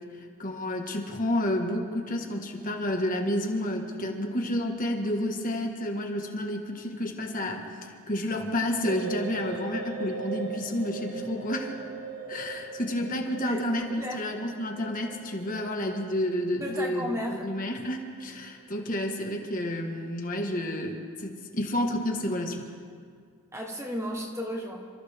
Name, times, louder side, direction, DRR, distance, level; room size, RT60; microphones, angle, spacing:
voice 1, 0.4-7.6 8.1-11.7 12.3-22.6, left 1 dB, 40° left, 2 dB, 1.6 m, -30 dB
sound 1, 8.8-18.8 19.0-19.2, right 3 dB, 80° right, 2.8 m, -40 dB
voice 2, 13.5-14.2 16.6-17.5 23.5-24.9, equal, 15° right, 1 dB, 1.3 m, -34 dB
28.0 x 14.0 x 3.6 m, 2.1 s
head